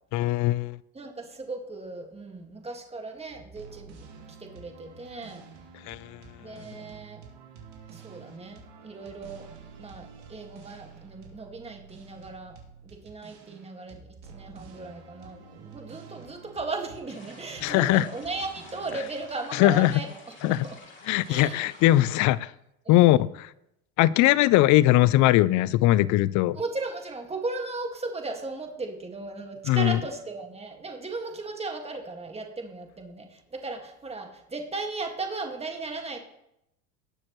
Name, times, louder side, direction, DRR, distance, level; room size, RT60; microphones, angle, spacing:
voice 1, 0.1-0.8 5.9-6.0 17.6-18.1 19.5-19.9 20.4-20.6 21.1-22.5 22.9-23.3 24.0-26.6 29.7-30.0, left 16 dB, 45° left, 20 dB, 0.5 m, -20 dB
voice 2, 0.9-3.9 4.4-5.4 6.4-7.2 7.9-9.5 9.8-12.6 12.8-20.8 21.3-21.6 22.9-23.2 26.5-36.2, right 3 dB, 15° right, 4 dB, 1.8 m, -36 dB
sound 1, 3.3-19.3, right 5 dB, 60° right, 3.2 m, -49 dB
sound 2, 17.1-22.3, left 3 dB, 25° left, 3.2 m, -50 dB
19.0 x 6.4 x 3.1 m, 0.81 s
hypercardioid pair, 100°, 43 cm